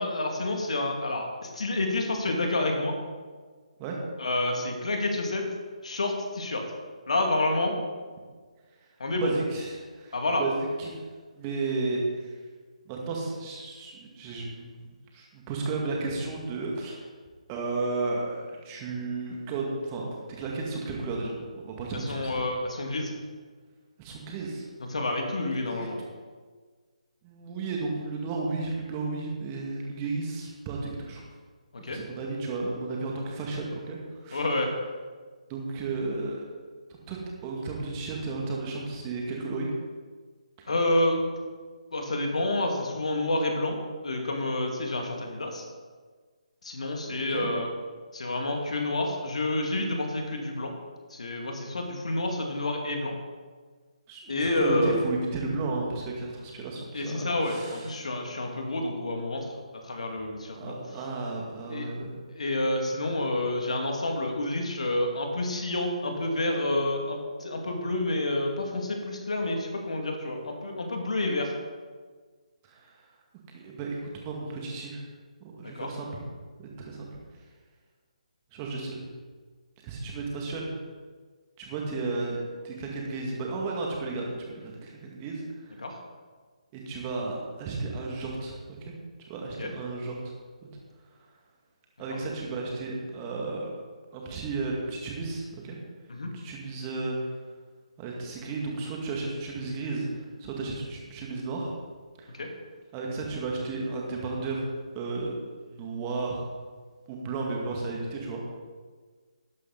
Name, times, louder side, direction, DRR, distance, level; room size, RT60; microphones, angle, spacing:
voice 1, 0.0-2.9 4.2-5.5 5.8-6.6 7.1-7.8 9.0-9.3 10.1-10.4 22.1-23.1 24.9-26.0 31.8-32.0 34.3-34.7 40.7-41.2 41.9-45.6 46.6-47.7 48.1-50.7 51.1-53.1 54.3-55.0 56.9-59.5 59.8-60.7 61.7-61.9 62.3-71.5 75.6-75.9 85.8-86.0 89.6-89.7 96.1-96.3 102.3-102.5, left 2 dB, 60° left, 2 dB, 2.4 m, -29 dB
voice 2, 9.2-11.0 11.4-12.4 12.9-14.8 15.1-17.0 17.5-22.5 24.0-24.7 25.7-25.9 27.2-31.2 31.9-34.4 35.5-36.4 37.1-39.7 40.6-40.7 47.3-47.6 54.1-57.9 60.6-62.1 72.6-73.1 73.5-75.0 75.4-76.1 76.6-77.1 78.5-79.1 79.8-80.7 81.6-82.4 82.6-85.8 86.7-88.9 89.2-90.2 92.0-93.7 94.1-95.8 96.3-97.2 98.0-101.7 102.2-102.4 102.9-104.6 104.9-106.4 107.1-108.4, right 3 dB, 20° right, -1 dB, 2.2 m, -33 dB
12.5 x 11.0 x 4.1 m, 1.5 s
figure-of-eight pair, 145°, 4 cm